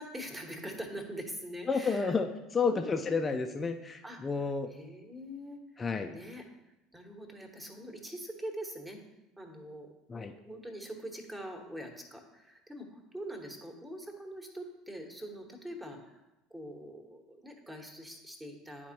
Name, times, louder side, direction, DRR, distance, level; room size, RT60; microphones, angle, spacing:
voice 1, 0.0-2.2 2.6-3.3 4.0-4.3 4.7-6.4 6.9-9.0 9.4-16.2 16.5-18.9, equal, 10° right, 3 dB, 1.2 m, -44 dB
voice 2, 1.7-2.3 2.5-4.7 5.8-6.1 10.1-10.3, left 4 dB, 25° left, 5 dB, 0.4 m, -30 dB
10.5 x 4.2 x 2.9 m, 0.97 s
figure-of-eight pair, 70°, 0 cm